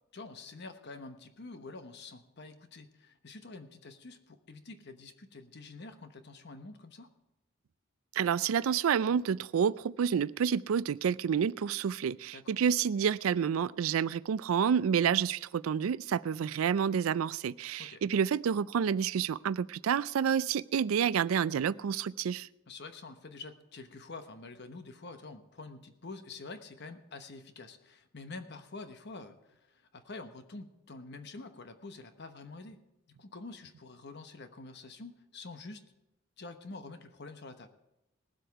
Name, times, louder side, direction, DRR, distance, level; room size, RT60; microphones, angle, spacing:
voice 1, 0.1-7.1 12.3-12.6 17.8-18.0 22.7-32.8 33.1-35.8 36.4-37.7, left 3 dB, 55° left, 8 dB, 1.0 m, -47 dB
voice 2, 8.1-22.5, right 7 dB, 80° right, 19 dB, 0.4 m, -29 dB
19.0 x 7.8 x 4.6 m, 0.92 s
head